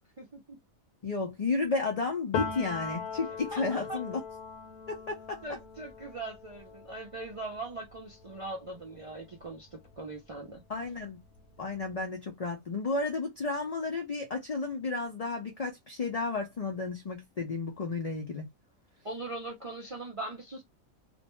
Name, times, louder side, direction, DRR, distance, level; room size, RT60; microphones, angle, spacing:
voice 1, 0.2-0.6 3.5-4.0 5.4-10.6 19.0-20.6, right 2 dB, 55° right, 0.3 m, -40 dB
voice 2, 1.0-4.2 4.9-5.4 10.7-11.2 11.6-18.5, left 3 dB, 50° left, 0.4 m, -32 dB
Piano, 2.3-9.9 10.3-11.8, left 5 dB, 90° left, 1.1 m, -41 dB
2.5 x 2.1 x 2.9 m
omnidirectional pair, 1.4 m